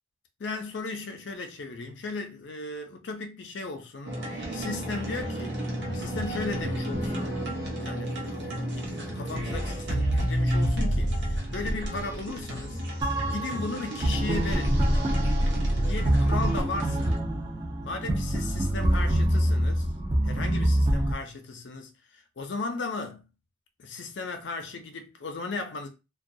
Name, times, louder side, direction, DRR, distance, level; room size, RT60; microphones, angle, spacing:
voice 1, 0.4-5.6 5.9-7.4 7.8-12.8 13.2-14.8 15.8-17.2 17.8-19.9 20.2-23.3 23.8-25.9, left 3 dB, 70° left, 0.5 m, -36 dB
sound 1, 4.0-17.2, equal, 60° right, 0.7 m, -29 dB
sound 2, 13.0-21.1, right 1 dB, 20° right, 0.4 m, -26 dB
2.2 x 2.2 x 2.6 m
head